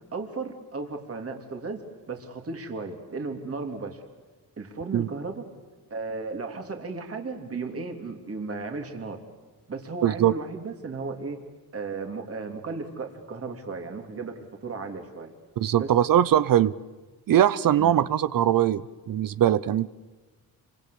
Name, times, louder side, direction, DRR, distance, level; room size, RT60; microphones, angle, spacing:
voice 1, 0.1-1.8 2.1-4.0 4.6-5.4 5.9-9.2 9.7-11.4 11.7-15.3 15.8-15.9 17.8-18.0, right 4 dB, 40° right, 4 dB, 3.1 m, -35 dB
voice 2, 10.0-10.3 15.6-16.8 17.3-19.9, right 11 dB, 60° right, 17 dB, 0.8 m, -21 dB
27.0 x 25.0 x 8.5 m, 1.3 s
cardioid pair, 105°, 37 cm